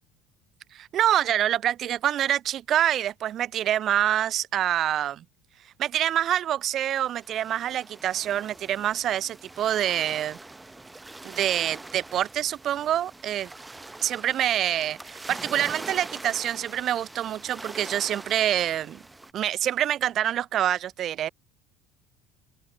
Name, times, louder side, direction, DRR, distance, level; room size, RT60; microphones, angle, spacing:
voice 1, 0.7-5.2 5.8-10.4 11.2-13.5 14.0-19.0 19.3-21.3, right 11 dB, 45° right, 0.3 m, -26 dB
sound 1, 7.0-19.3, right 2 dB, 10° right, 1.0 m, -43 dB
open air
figure-of-eight pair, 65°, 0 cm